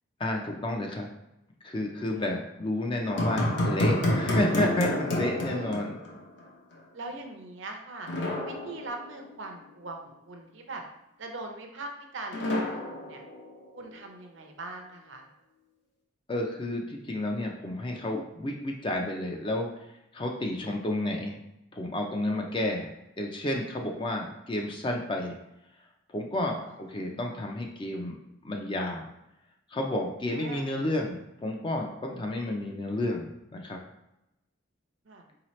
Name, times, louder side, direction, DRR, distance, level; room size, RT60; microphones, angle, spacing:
voice 1, 0.2-1.1 1.6-6.0 16.3-19.7 20.1-21.4 21.7-25.4 26.1-28.2 28.4-29.1 29.7-33.8, left 1 dB, 25° left, 1 dB, 0.4 m, -31 dB
sound 1, 3.1-6.4 6.7-6.8 8.1-9.5 12.3-13.9, left 1 dB, 60° left, 0.8 m, -29 dB
voice 2, 5.5-5.8 6.9-8.1 8.4-10.8 11.2-13.2 13.7-15.3 26.6-26.8 30.3-30.9 35.0-35.2, right 2 dB, 65° right, 3 dB, 0.6 m, -41 dB
4.8 x 2.9 x 3.1 m, 0.90 s
head